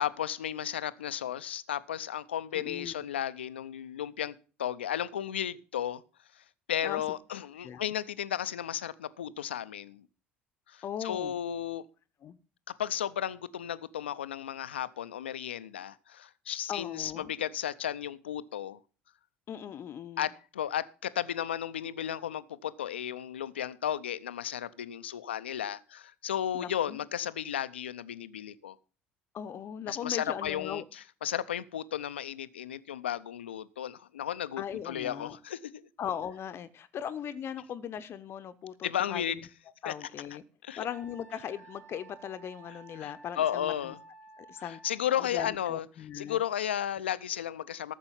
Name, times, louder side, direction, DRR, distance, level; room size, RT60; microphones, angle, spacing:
voice 1, 0.0-6.0 6.4-10.0 10.7-11.8 12.7-18.8 20.2-28.8 29.9-35.8 38.8-39.4 39.8-40.1 40.6-40.8 43.0-44.0 44.6-45.9 46.1-47.9, left 10 dB, 75° left, 0.5 m, -34 dB
voice 2, 2.5-2.9 6.8-7.0 7.6-7.8 10.8-11.4 12.2-12.4 16.7-17.3 19.5-20.3 26.5-27.0 29.3-30.8 34.6-35.4 36.0-39.5 39.8-40.4 40.8-43.9 44.4-44.8 45.2-46.4, left 9 dB, 45° left, 0.8 m, -39 dB
Wind instrument woodwind instrument, 40.8-45.0, right 3 dB, 85° right, 2.8 m, -53 dB
13.5 x 6.9 x 5.5 m
figure-of-eight pair, 60°, 6 cm